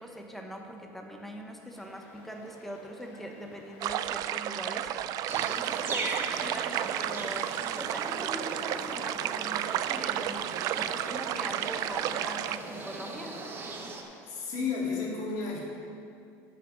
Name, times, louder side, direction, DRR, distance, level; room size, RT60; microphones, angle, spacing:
voice 1, 0.0-13.4, equal, 5° left, 2 dB, 1.0 m, -42 dB
sound 1, 1.7-14.2, left 2 dB, 90° left, 2.1 m, -54 dB
sound 2, 3.8-12.6, right 12 dB, 50° right, 0.4 m, -32 dB
sound 3, 5.3-14.0, right 3 dB, 30° right, 1.0 m, -39 dB
voice 2, 14.2-15.6, left 5 dB, 55° left, -4 dB, 3.0 m, -32 dB
13.0 x 6.7 x 5.0 m, 2.4 s
cardioid pair, 145°, 8 cm